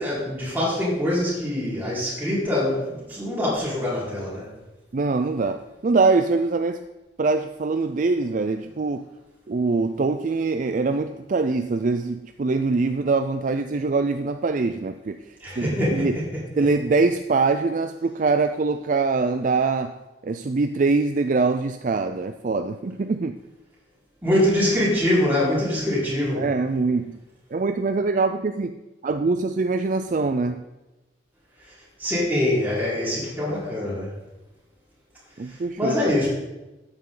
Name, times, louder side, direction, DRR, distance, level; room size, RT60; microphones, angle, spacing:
voice 1, 0.0-4.5 15.4-16.1 24.2-26.4 32.0-34.1 35.5-36.3, left 1 dB, 10° right, -8 dB, 4.4 m, -24 dB
voice 2, 4.9-6.9 7.2-9.0 9.5-16.2 16.6-20.0 20.2-23.4 26.4-27.2 27.5-30.6 35.4-36.1, right 3 dB, 45° right, 8 dB, 0.4 m, -23 dB
13.0 x 9.0 x 3.8 m, 1.0 s
head